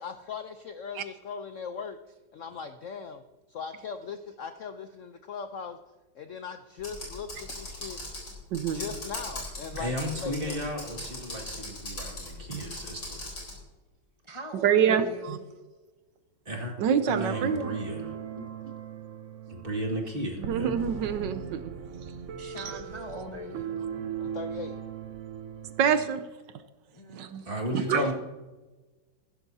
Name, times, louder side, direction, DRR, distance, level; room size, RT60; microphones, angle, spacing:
voice 1, 0.0-2.0 2.3-3.2 3.5-5.8 6.1-8.0 8.7-10.9 18.3-18.5 24.2-24.8 27.9-28.1, left 6 dB, 85° left, 8 dB, 0.6 m, -39 dB
Computer keyboard, 6.8-13.6, left 1 dB, 60° left, 5.0 m, -39 dB
voice 2, 8.5-8.8 12.5-12.6 14.6-15.4 16.8-17.7 18.0-18.1 20.4-21.7 22.0-22.1 22.6-22.7 25.8-26.2 27.1-27.4 27.7-28.0, right 8 dB, 75° right, 11 dB, 1.3 m, -26 dB
voice 3, 9.8-13.3 16.5-16.7 17.1-18.1 19.5-20.8 27.5-28.1, right 1 dB, 30° right, 0 dB, 2.1 m, -34 dB
voice 4, 14.2-15.4 17.3-17.4 22.4-23.8 26.9-27.4, equal, 25° left, 2 dB, 0.8 m, -42 dB
sound 1, 17.1-26.1, right 8 dB, 60° right, 0.8 m, -38 dB
15.0 x 12.0 x 2.7 m, 1.2 s
omnidirectional pair, 2.1 m